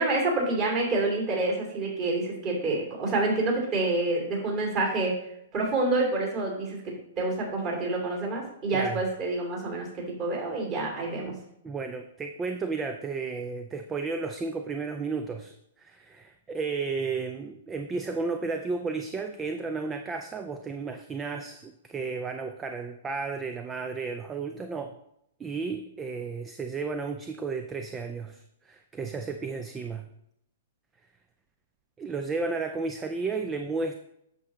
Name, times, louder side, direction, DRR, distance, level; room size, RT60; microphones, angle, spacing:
voice 1, 0.0-5.2 5.5-11.3, right 2 dB, 30° right, -2 dB, 2.7 m, -28 dB
voice 2, 8.7-9.0 11.6-25.0 25.4-30.1 32.0-34.0, right 4 dB, 15° right, 7 dB, 0.5 m, -33 dB
8.1 x 6.8 x 3.1 m, 0.78 s
figure-of-eight pair, 110°, 0 cm